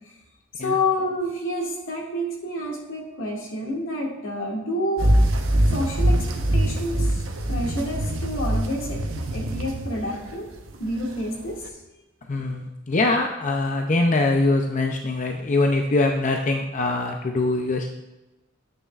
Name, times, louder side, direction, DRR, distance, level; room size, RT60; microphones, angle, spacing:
voice 1, 0.6-5.1 5.7-6.2 6.5-7.2 7.5-9.0 9.3-10.4 10.8-11.6, left 1 dB, 80° left, -1 dB, 2.1 m, -28 dB
sound 1, 5.0-11.7, right 1 dB, 80° right, 1.0 m, -23 dB
voice 2, 12.3-17.9, left 2 dB, 40° left, 3 dB, 0.5 m, -23 dB
10.0 x 8.8 x 2.4 m, 1.0 s
head